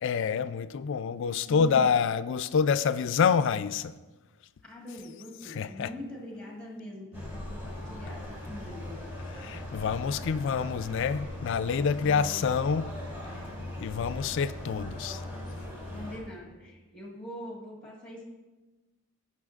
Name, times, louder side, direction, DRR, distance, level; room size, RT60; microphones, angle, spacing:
voice 1, 0.0-3.9 5.4-5.9 9.4-12.9 13.8-15.2, left 6 dB, 55° left, 0.3 m, -27 dB
voice 2, 1.5-1.9 4.6-9.1 12.0-12.6 15.9-18.2, left 1 dB, 5° left, 1.5 m, -43 dB
sound 1, 7.1-16.2, left 1 dB, 10° right, 1.9 m, -39 dB
16.5 x 5.7 x 2.4 m
head